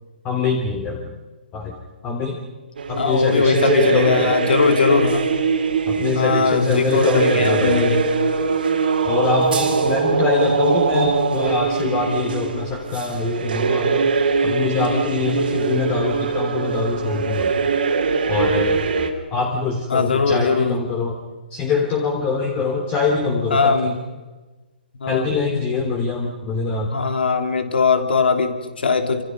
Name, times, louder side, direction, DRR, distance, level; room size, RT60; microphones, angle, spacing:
voice 1, 0.2-1.0 1.5-1.7 2.0-2.4 2.9-4.3 5.9-8.0 9.0-14.1 14.4-17.7 18.3-21.2 21.5-24.0 25.1-26.9, left 4 dB, 25° left, 2 dB, 3.4 m, -24 dB
sound 1, 2.8-19.1, right 5 dB, 70° right, 3.7 m, -22 dB
voice 2, 3.0-5.3 6.1-8.2 19.9-20.8 23.5-24.0 25.0-25.3 26.9-29.2, left 4 dB, 75° left, 6 dB, 3.2 m, -20 dB
27.5 x 27.0 x 5.4 m, 1.2 s
hypercardioid pair, 140°, 5 cm